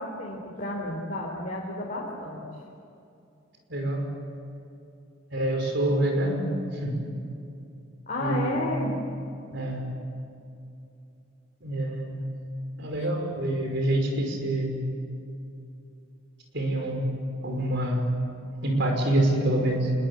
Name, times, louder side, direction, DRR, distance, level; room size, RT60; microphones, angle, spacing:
voice 1, 0.0-2.4 8.1-9.0 13.0-13.1, left 1 dB, 40° left, -4 dB, 4.0 m, -31 dB
voice 2, 3.7-4.1 5.3-7.0 8.2-8.6 9.5-9.9 11.6-12.2 12.8-14.8 16.5-17.1 17.4-18.1 18.6-19.9, right 1 dB, 60° right, 3 dB, 5.6 m, -26 dB
26.5 x 22.5 x 8.5 m, 2.6 s
head